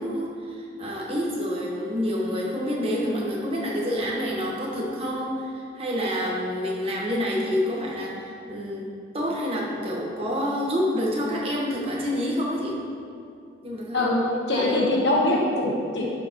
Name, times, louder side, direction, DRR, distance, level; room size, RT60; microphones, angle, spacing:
voice 1, 0.0-8.9 9.1-12.8 13.6-14.8, equal, 30° right, -3 dB, 1.2 m, -28 dB
voice 2, 14.5-16.1, left 2 dB, 60° left, -3 dB, 1.2 m, -22 dB
11.0 x 5.7 x 3.0 m, 2.5 s
head